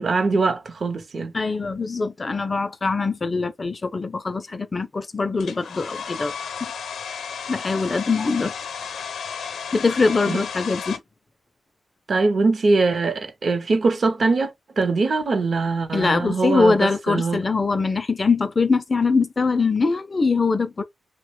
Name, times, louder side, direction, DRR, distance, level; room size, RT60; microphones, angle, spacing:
voice 1, 0.0-1.3 10.3-10.4 12.1-17.4, right 3 dB, 45° right, 0.6 m, -22 dB
voice 2, 1.3-6.3 6.6-6.7 7.5-8.5 9.7-11.0 15.9-20.8, left 4 dB, 30° left, 0.3 m, -22 dB
Domestic sounds home sounds, 5.4-11.0, left 6 dB, 75° left, 0.6 m, -33 dB
3.1 x 2.1 x 3.0 m
wide cardioid pair, 150°, 0 cm